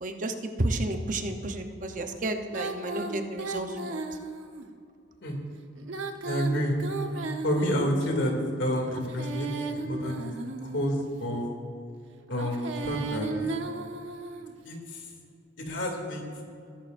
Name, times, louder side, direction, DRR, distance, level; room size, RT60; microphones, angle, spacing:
voice 1, 0.0-4.1, right 1 dB, 40° right, 5 dB, 0.8 m, -31 dB
Female singing, 2.5-4.7 5.8-8.1 8.9-11.0 12.3-14.5, right 3 dB, 80° right, 1.0 m, -35 dB
voice 2, 6.2-6.8 7.4-10.3 10.6-11.5 12.3-13.3 14.6-15.0 15.7-16.2, equal, 75° left, 1 dB, 2.6 m, -29 dB
22.0 x 11.5 x 2.6 m, 2.5 s
head